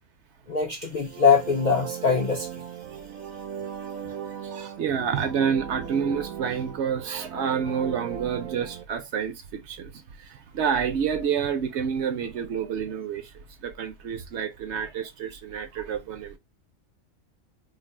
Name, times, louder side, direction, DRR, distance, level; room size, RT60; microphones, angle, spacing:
voice 1, 0.5-2.5, left 5 dB, 55° left, 0.5 m, -22 dB
sound 1, 0.9-8.8, right 9 dB, 85° right, 1.1 m, -38 dB
voice 2, 4.4-13.3 13.6-16.4, right 7 dB, 65° right, 0.8 m, -29 dB
2.7 x 2.6 x 4.0 m
omnidirectional pair, 1.4 m